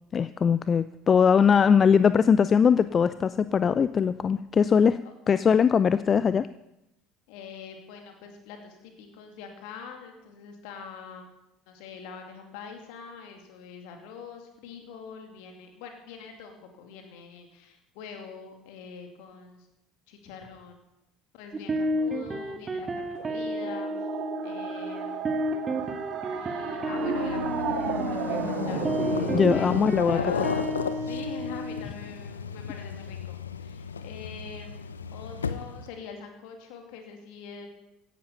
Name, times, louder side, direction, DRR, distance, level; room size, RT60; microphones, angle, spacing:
voice 1, 0.1-5.0 5.3-6.5 29.3-30.2, left 6 dB, 35° left, 15 dB, 0.4 m, -21 dB
voice 2, 7.3-11.3 11.7-19.7 20.1-20.8 21.3-24.1 24.4-25.5 26.3-37.7, left 6 dB, 60° left, 4 dB, 2.6 m, -44 dB
sound 1, 21.5-31.8, equal, 30° right, 1.9 m, -32 dB
sound 2, 23.2-29.7, right 6 dB, 50° right, 2.0 m, -33 dB
sound 3, 26.8-35.9, left 6 dB, 80° left, 0.6 m, -34 dB
16.0 x 11.5 x 5.6 m, 0.89 s
figure-of-eight pair, 65°, 0 cm